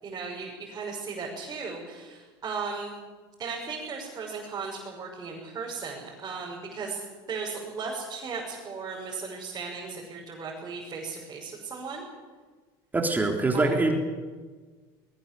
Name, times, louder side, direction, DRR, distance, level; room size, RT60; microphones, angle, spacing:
voice 1, 0.0-2.9 3.4-12.0 13.5-13.8, right 4 dB, 35° right, -4 dB, 6.6 m, -36 dB
voice 2, 12.9-14.0, right 2 dB, 15° right, 2 dB, 3.7 m, -24 dB
21.0 x 20.5 x 7.9 m, 1.4 s
supercardioid pair, 95°, 11 cm